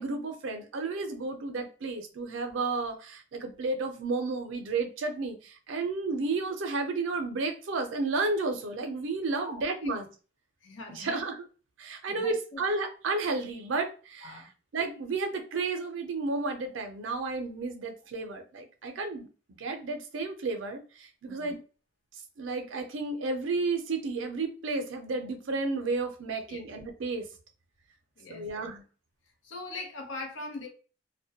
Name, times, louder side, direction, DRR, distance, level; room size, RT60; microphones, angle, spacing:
voice 1, 0.0-10.1 10.9-11.4 11.8-14.4 14.7-19.3 19.6-21.6 22.4-27.3 28.3-28.8, right 3 dB, 85° right, 0.5 m, -32 dB
voice 2, 9.3-10.0 10.6-11.2 12.1-12.6 14.2-14.5 21.2-21.6 26.5-26.6 28.2-28.7 29.4-30.7, left 3 dB, 85° left, 0.7 m, -41 dB
2.1 x 2.1 x 2.7 m
head